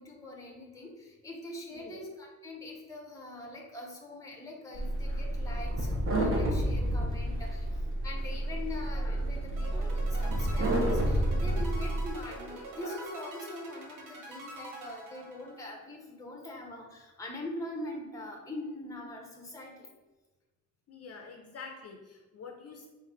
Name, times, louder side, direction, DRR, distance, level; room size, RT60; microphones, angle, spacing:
voice 1, 0.0-7.7 8.0-19.9, left 1 dB, 10° left, -1 dB, 0.7 m, -43 dB
voice 2, 1.7-2.0 20.9-22.9, left 4 dB, 50° left, 2 dB, 0.5 m, -46 dB
sound 1, 4.7-12.1, right 1 dB, 40° right, 0.8 m, -30 dB
sound 2, 9.6-15.9, right 2 dB, 85° right, 0.9 m, -45 dB
3.7 x 2.6 x 4.3 m, 1.2 s
wide cardioid pair, 155°, 31 cm